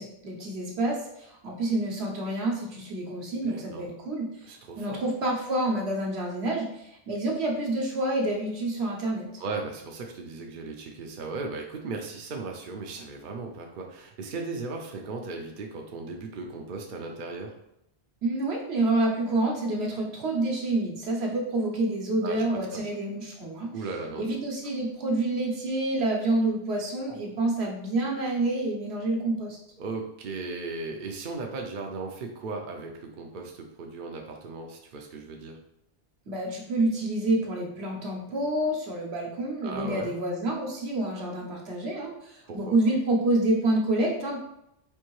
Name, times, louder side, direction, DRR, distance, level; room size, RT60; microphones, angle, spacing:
voice 1, 0.0-4.3 4.8-9.3 18.2-23.7 24.2-29.6 36.3-44.4, right 2 dB, 75° right, -1 dB, 1.2 m, -28 dB
voice 2, 3.4-3.9 4.4-5.0 9.4-17.6 22.2-22.9 23.7-24.4 29.8-35.6 39.6-40.1 42.5-42.7, right 3 dB, 60° right, 2 dB, 0.7 m, -37 dB
4.5 x 2.6 x 3.0 m, 0.78 s
omnidirectional pair, 1.1 m